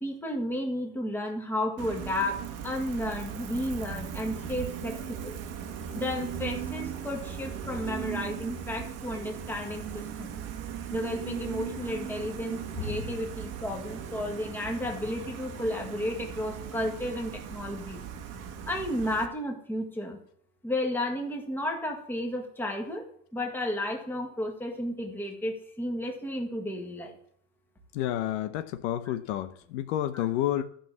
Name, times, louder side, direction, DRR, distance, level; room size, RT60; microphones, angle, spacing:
voice 1, 0.0-5.4 5.9-10.3 10.9-18.0 18.7-20.2 20.6-23.1 23.3-27.2 29.1-29.2 30.1-30.3, left 1 dB, 5° left, 1.8 m, -33 dB
Gull seagull, 1.8-19.3, right 8 dB, 45° right, 1.3 m, -38 dB
voice 2, 27.9-30.6, left 12 dB, 70° left, 0.9 m, -30 dB
12.5 x 5.8 x 7.1 m
supercardioid pair, 155°, 35 cm